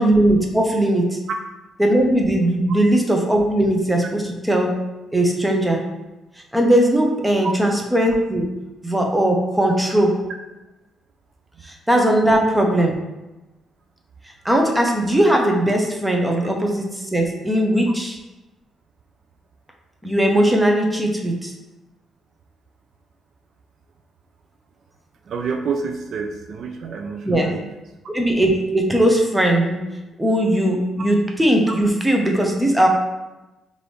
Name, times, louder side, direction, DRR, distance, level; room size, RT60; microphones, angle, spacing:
voice 1, 0.0-1.2 1.8-4.2 4.5-4.7 5.1-5.8 6.5-8.5 8.8-10.1 11.6-12.9 14.4-18.2 20.0-21.5 27.2-27.5 28.1-29.8 30.2-32.9, right 1 dB, 10° right, 1 dB, 0.7 m, -19 dB
voice 2, 25.3-27.6 31.0-31.1, right 5 dB, 65° right, 4 dB, 0.4 m, -28 dB
4.8 x 2.6 x 3.2 m, 1.0 s
cardioid pair, 90°, 0 cm